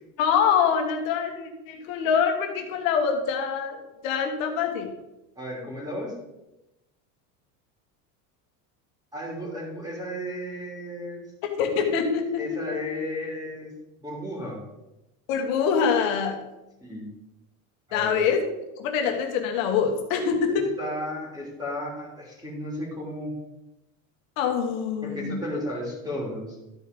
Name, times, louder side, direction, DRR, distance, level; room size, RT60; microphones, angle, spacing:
voice 1, 0.2-4.9 11.6-12.6 15.3-16.4 17.9-18.5 18.8-20.7 24.4-25.4, left 6 dB, 85° left, 3 dB, 1.6 m, -25 dB
voice 2, 5.4-6.1 9.1-11.2 12.4-13.7 14.0-14.6 16.8-17.1 17.9-18.2 20.5-23.3 25.0-26.5, left 1 dB, 10° right, -3 dB, 3.1 m, -34 dB
12.5 x 4.8 x 5.2 m, 0.95 s
supercardioid pair, 125°, 39 cm